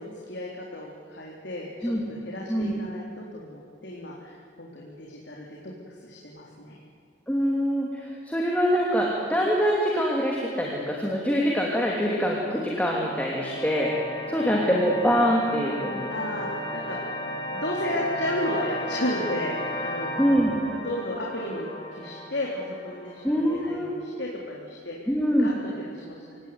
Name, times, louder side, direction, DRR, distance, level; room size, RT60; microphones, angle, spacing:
voice 1, 0.0-5.7 6.0-6.8 16.1-17.0 17.5-20.1 20.6-25.0 25.4-26.4, left 1 dB, 80° left, -3 dB, 3.8 m, -33 dB
voice 2, 7.3-13.9 14.3-16.1 20.2-20.5 23.2-23.9 25.1-25.5, equal, 10° left, -3 dB, 2.9 m, -24 dB
sound 1, 12.7-23.7, equal, 25° left, 3.7 m, -35 dB
26.0 x 18.0 x 9.6 m, 2.3 s
head